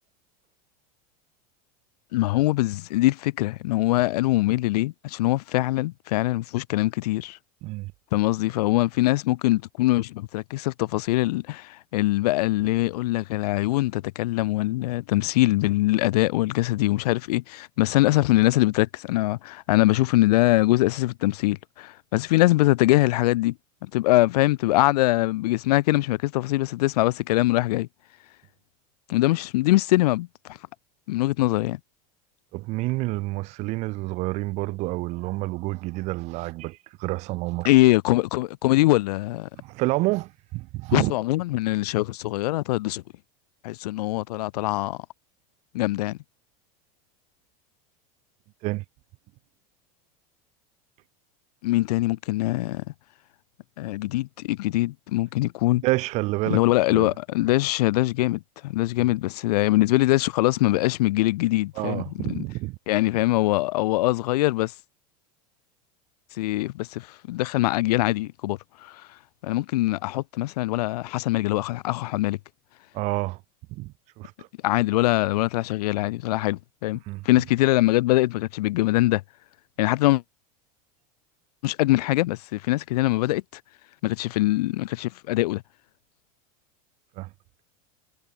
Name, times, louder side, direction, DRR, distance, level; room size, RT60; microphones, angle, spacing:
voice 1, 2.1-7.4 8.1-23.5 23.8-27.9 29.1-30.6 31.1-31.8 37.6-39.5 40.9-43.0 43.6-45.0 45.7-46.2 51.6-52.8 53.8-55.8 56.5-62.2 62.9-64.7 66.4-68.9 69.4-72.4 74.6-77.0 77.2-79.2 79.8-80.2 81.6-83.4 84.0-85.6, left 18 dB, 75° left, 1.5 m, -23 dB
voice 2, 32.5-37.7 39.6-41.1 48.6-48.8 55.8-56.6 56.9-57.1 61.8-62.8 72.9-73.4 73.7-74.5 77.1-77.3 87.2-87.3, right 21 dB, 35° right, 0.6 m, -29 dB
supercardioid pair, 165°, 20 cm